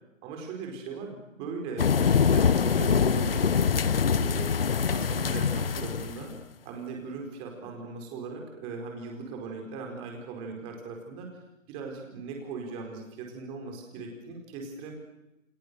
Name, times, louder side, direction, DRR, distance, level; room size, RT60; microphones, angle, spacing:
voice 1, 0.2-4.5 4.9-6.3 6.6-11.3 11.7-14.9, right 4 dB, 15° right, 2 dB, 4.5 m, -39 dB
sound 1, 1.8-6.2, left 6 dB, 45° left, 1.1 m, -24 dB
29.5 x 28.5 x 6.9 m, 0.95 s
hypercardioid pair, 165°, 39 cm